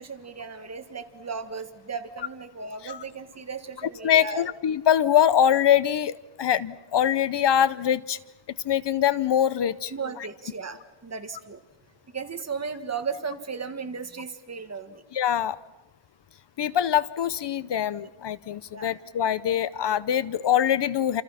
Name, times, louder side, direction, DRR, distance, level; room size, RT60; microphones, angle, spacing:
voice 1, 0.0-4.5 9.9-11.6 12.1-15.0 18.7-18.9, right 5 dB, 30° right, 7 dB, 1.8 m, -36 dB
voice 2, 4.0-8.2 8.5-9.9 15.1-15.6 16.6-21.2, left 10 dB, 60° left, 17 dB, 0.8 m, -23 dB
29.0 x 28.0 x 5.8 m, 1.1 s
wide cardioid pair, 140°, 48 cm